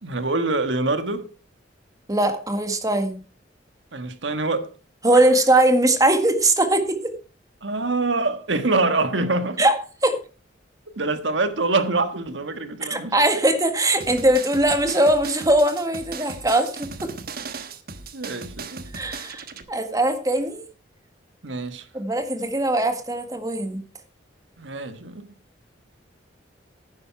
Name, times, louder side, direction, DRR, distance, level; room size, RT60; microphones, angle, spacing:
voice 1, 0.0-1.3 3.9-4.7 7.6-9.7 11.0-13.2 18.1-18.8 21.4-21.9 24.6-25.2, right 3 dB, 85° right, 1.5 m, -25 dB
voice 2, 2.1-3.2 5.0-7.1 9.6-9.7 10.0-10.2 12.9-16.9 18.9-20.6 21.9-23.8, right 1 dB, 20° right, 1.8 m, -20 dB
sound 1, 14.0-19.6, right 4 dB, 55° right, 1.2 m, -37 dB
11.0 x 10.0 x 4.6 m
head